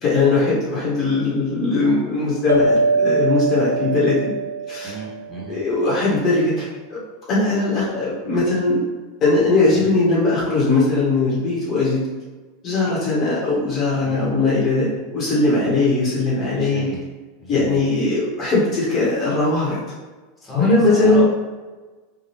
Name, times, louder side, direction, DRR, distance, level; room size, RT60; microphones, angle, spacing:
voice 1, 0.0-4.3 4.7-4.9 5.5-7.0 7.3-8.8 9.2-12.0 12.6-16.9 17.5-19.8 20.5-21.2, left 3 dB, 40° left, -6 dB, 1.1 m, -19 dB
sound 1, 2.5-5.5, right 2 dB, 85° right, 0.4 m, -22 dB
voice 2, 4.8-5.6 9.7-9.8 14.0-14.3 16.5-17.0 17.4-17.8 20.4-21.2, right 1 dB, 15° left, -6 dB, 1.2 m, -33 dB
3.2 x 2.3 x 2.9 m, 1.3 s
hypercardioid pair, 90°, 0 cm